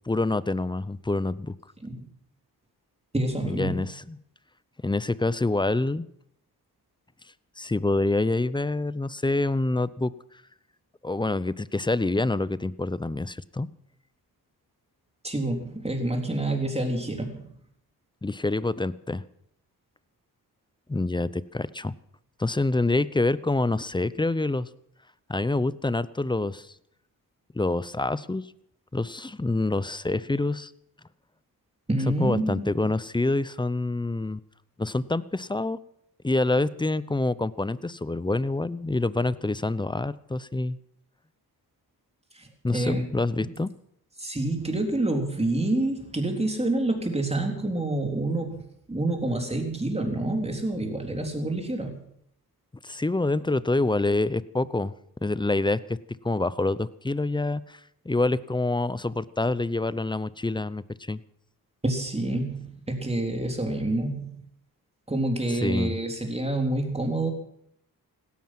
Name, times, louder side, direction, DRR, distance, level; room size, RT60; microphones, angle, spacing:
voice 1, 0.1-1.6 3.4-4.2 4.8-6.1 7.6-10.1 11.0-13.7 18.2-19.2 20.9-21.9 22.4-24.7 25.3-26.7 27.5-28.4 28.9-30.7 32.2-34.4 34.8-35.8 36.2-40.8 42.6-43.7 52.8-54.9 55.2-56.0 56.2-57.8 58.0-61.2 65.6-66.0, left 2 dB, 10° left, 18 dB, 0.6 m, -26 dB
voice 2, 3.1-3.8 15.2-17.5 31.9-32.9 42.3-43.0 43.4-43.5 44.2-48.6 48.9-52.0 61.8-64.3 65.1-67.3, right 2 dB, 15° right, 3 dB, 3.7 m, -28 dB
17.0 x 13.0 x 6.0 m, 0.72 s
cardioid pair, 75°, 37 cm